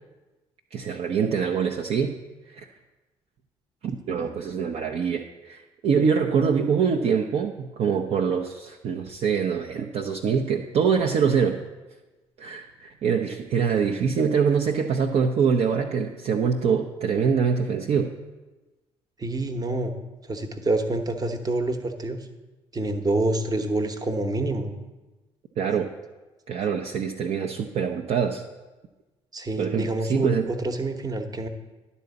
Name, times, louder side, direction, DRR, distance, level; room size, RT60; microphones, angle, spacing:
voice 1, 0.7-2.2 2.5-2.7 3.8-11.6 12.4-18.1 25.6-25.9 26.5-28.4 29.6-30.5, right 6 dB, 45° right, 2 dB, 0.6 m, -24 dB
voice 2, 19.2-19.9 20.3-22.2 22.7-24.7 29.3-31.5, right 2 dB, 25° right, 6 dB, 1.0 m, -27 dB
11.0 x 4.1 x 6.9 m, 1.2 s
figure-of-eight pair, 50°, 16 cm